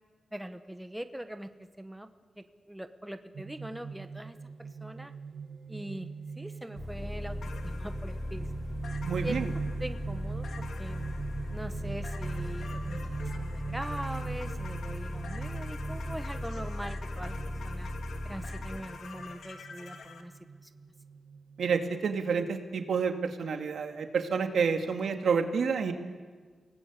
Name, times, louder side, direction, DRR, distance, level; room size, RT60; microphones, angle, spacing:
voice 1, 0.3-2.1 2.4-5.1 5.7-6.1 6.4-7.4 7.6-8.5 9.2-9.5 9.8-11.1 11.5-17.4 17.6-17.9 18.2-20.3 20.6-20.7, right 1 dB, 5° right, 8 dB, 0.9 m, -42 dB
sound 1, 3.3-22.5, right 5 dB, 50° right, 7.1 m, -42 dB
sound 2, 6.7-18.8, left 1 dB, 35° left, 4.5 m, -37 dB
sound 3, 7.4-20.2, left 5 dB, 80° left, 2.1 m, -48 dB
voice 2, 9.0-9.5 21.6-25.9, right 5 dB, 75° right, 5 dB, 2.1 m, -29 dB
29.0 x 18.5 x 8.3 m, 1.5 s
wide cardioid pair, 120°, 0 cm